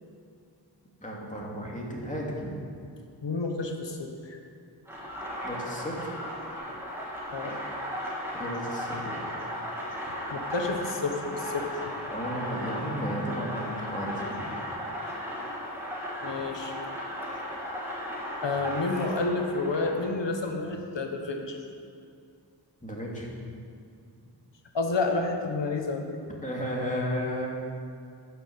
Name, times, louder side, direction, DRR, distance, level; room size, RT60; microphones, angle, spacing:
voice 1, 1.0-2.6 5.4-6.2 8.3-9.2 12.1-14.5 22.8-23.3 26.4-27.5, equal, 15° left, -4 dB, 2.8 m, -33 dB
voice 2, 3.2-4.4 7.3-7.6 10.3-11.9 16.2-16.7 18.4-21.6 24.7-26.2, left 3 dB, 80° left, 3 dB, 1.4 m, -30 dB
sound 1, 4.9-20.1, equal, 5° right, 3.1 m, -36 dB
11.5 x 6.4 x 8.2 m, 2.4 s
wide cardioid pair, 60°, 43 cm